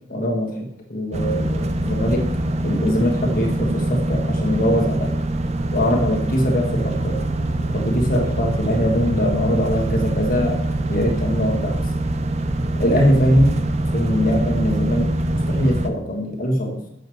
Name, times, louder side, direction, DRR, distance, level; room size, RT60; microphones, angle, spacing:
voice 1, 0.1-0.6 0.9-2.3 2.6-5.1 5.7-7.2 7.7-10.6 10.9-11.8 12.8-13.6 13.9-15.1 15.5-16.8, equal, 50° left, 0 dB, 1.4 m, -21 dB
sound 1, 1.1-15.9, right 1 dB, 35° right, 0.5 m, -23 dB
6.3 x 5.3 x 6.3 m, 0.73 s
head